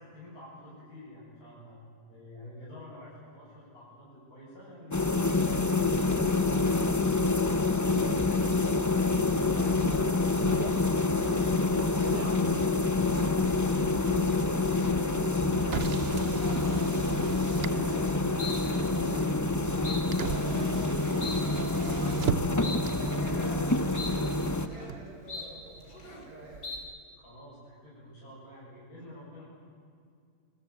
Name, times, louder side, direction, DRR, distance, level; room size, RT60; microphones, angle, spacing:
voice 1, 0.0-1.8 2.1-7.8 21.1-22.9 27.1-29.5, equal, 60° left, -9 dB, 8.2 m, -49 dB
sound 1, 4.9-24.7, left 3 dB, 15° left, 0.6 m, -27 dB
sound 2, 9.4-9.8 10.3-10.7 11.1-11.6 12.0-12.4 12.9-13.4 13.7-14.2 14.6-15.1 15.5-15.8 16.4-16.7 17.5-17.9 18.4-18.6 18.9-19.3 19.8-20.0 20.4-20.8 21.2-21.4 21.8-22.2 22.6-22.8 23.2-23.6 23.9-24.1 24.4-24.9 25.3-25.5 25.8-26.3 26.6-26.8, left 2 dB, 85° left, 5.0 m, -42 dB
Motor vehicle (road), 9.8-26.9, right 6 dB, 45° right, 1.0 m, -40 dB
voice 2, 10.5-13.8 14.2-20.7 22.4-26.7, right 1 dB, 75° right, -2 dB, 8.5 m, -48 dB
29.0 x 22.5 x 8.4 m, 2.3 s
omnidirectional pair, 1.7 m